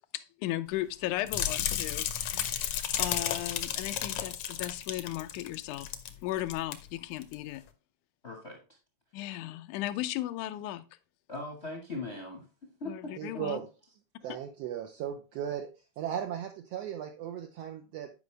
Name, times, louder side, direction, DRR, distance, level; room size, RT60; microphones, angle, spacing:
voice 1, 0.1-5.9 6.2-7.6 9.1-10.8 12.9-13.6, left 15 dB, 85° left, 2.0 m, -36 dB
sound 1, 1.3-6.1 6.4-6.7 7.2-7.3, left 10 dB, 70° left, 1.5 m, -33 dB
voice 2, 8.2-8.6 11.3-12.4 12.8-13.4, left 2 dB, 40° left, 0.9 m, -40 dB
voice 3, 13.2-13.7 14.2-15.7 16.0-18.1, right 9 dB, 75° right, 1.5 m, -36 dB
9.5 x 5.2 x 3.2 m
omnidirectional pair, 3.4 m